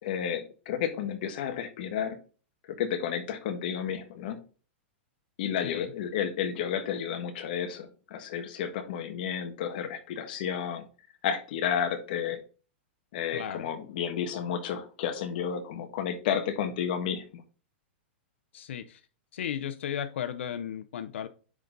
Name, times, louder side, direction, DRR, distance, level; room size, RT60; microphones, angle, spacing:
voice 1, 0.0-2.1 2.7-4.4 5.4-10.8 11.2-12.4 13.1-17.2, left 8 dB, 50° left, 8 dB, 1.5 m, -31 dB
voice 2, 13.3-13.7 18.5-19.0 19.3-21.3, left 9 dB, 75° left, 12 dB, 0.7 m, -35 dB
9.8 x 4.1 x 3.9 m, 0.37 s
supercardioid pair, 160°, 7 cm